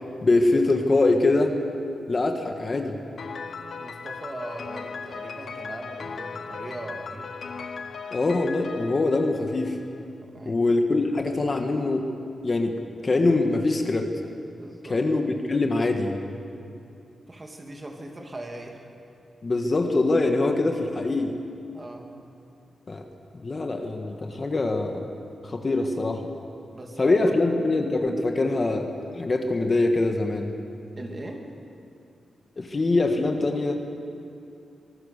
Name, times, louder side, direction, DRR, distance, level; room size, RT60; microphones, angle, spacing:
voice 1, 0.2-1.6 2.1-3.0 8.1-9.8 10.4-12.1 12.4-14.1 14.9-15.2 15.5-16.2 19.4-21.3 22.9-23.0 23.3-25.1 25.4-26.3 27.0-30.5 32.6-33.7, left 2 dB, 35° left, 4 dB, 1.7 m, -23 dB
Piano, 3.2-10.0, left 5 dB, 60° left, 1.2 m, -38 dB
voice 2, 3.7-7.4 10.2-10.6 14.5-15.0 17.3-18.9 21.7-22.1 26.7-27.5 31.0-31.5, right 1 dB, 25° right, 2 dB, 2.7 m, -39 dB
25.0 x 19.5 x 6.8 m, 2.6 s
wide cardioid pair, 130°, 0 cm